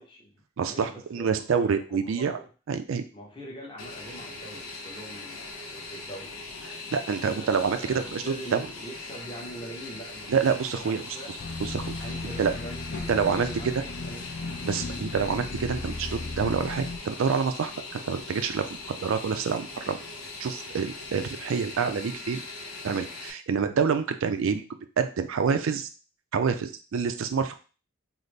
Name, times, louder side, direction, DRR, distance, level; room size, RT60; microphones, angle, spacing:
voice 1, 0.0-2.5 3.1-6.4 7.0-11.4 12.0-14.3, right 1 dB, 25° left, -3 dB, 0.9 m, -44 dB
voice 2, 0.6-2.4 2.7-3.0 6.9-8.7 10.3-11.0 11.6-11.9 12.4-12.5 13.1-13.5 14.6-20.0 20.4-22.4 22.8-24.6 25.0-25.9 26.3-27.5, right 6 dB, 65° right, 9 dB, 0.4 m, -27 dB
Fixed-wing aircraft airplane, 3.8-23.3, left 3 dB, 90° left, 0.8 m, -41 dB
sound 1, 11.4-17.0, left 2 dB, 50° left, 0.6 m, -36 dB
3.9 x 2.0 x 3.3 m, 0.35 s
head